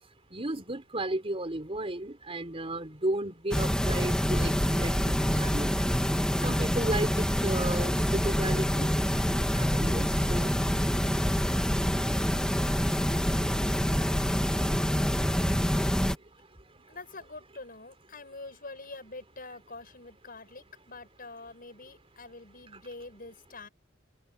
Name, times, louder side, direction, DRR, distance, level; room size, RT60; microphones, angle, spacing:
voice 1, 0.3-5.7 6.4-8.9 9.6-10.5, right 1 dB, 30° right, 4.2 m, -33 dB
sound 1, 3.5-16.2, equal, 5° left, 2.5 m, -26 dB
voice 2, 16.9-23.7, left 3 dB, 45° left, 7.9 m, -45 dB
open air
head